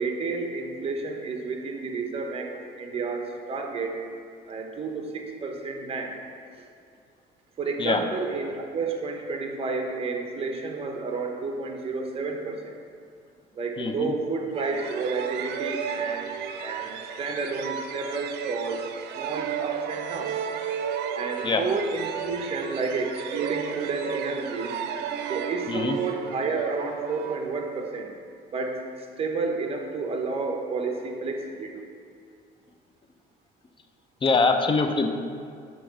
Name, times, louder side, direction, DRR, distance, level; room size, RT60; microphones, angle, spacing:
voice 1, 0.0-4.0 4.5-6.2 7.6-12.8 13.6-16.3 16.6-18.9 19.1-20.4 21.1-24.7 25.3-28.1 28.5-31.8, right 4 dB, 35° right, 2 dB, 1.0 m, -31 dB
voice 2, 13.8-14.1 21.4-21.6 25.7-26.0 34.2-35.1, left 4 dB, 30° left, 6 dB, 0.6 m, -23 dB
sound 1, 14.5-28.0, right 8 dB, 80° right, 0.5 m, -34 dB
8.6 x 3.0 x 6.1 m, 2.3 s
cardioid pair, 110°, 17 cm